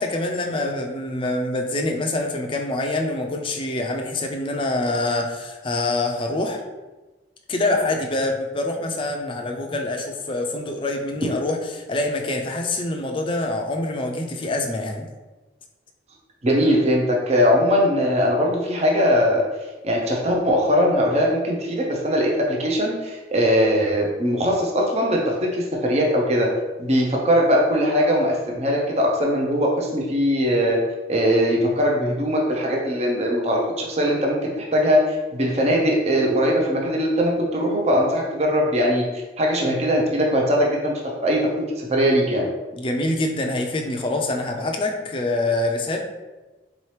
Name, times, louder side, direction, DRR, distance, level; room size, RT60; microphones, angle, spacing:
voice 1, 0.0-6.6 7.5-15.1 42.7-46.0, left 2 dB, 30° left, 2 dB, 0.4 m, -25 dB
voice 2, 16.4-19.4 19.8-26.5 26.8-30.8 31.1-39.0 39.4-40.9 41.2-41.4 41.8-42.5, equal, 35° right, -1 dB, 0.6 m, -20 dB
3.9 x 2.9 x 3.2 m, 1.2 s
head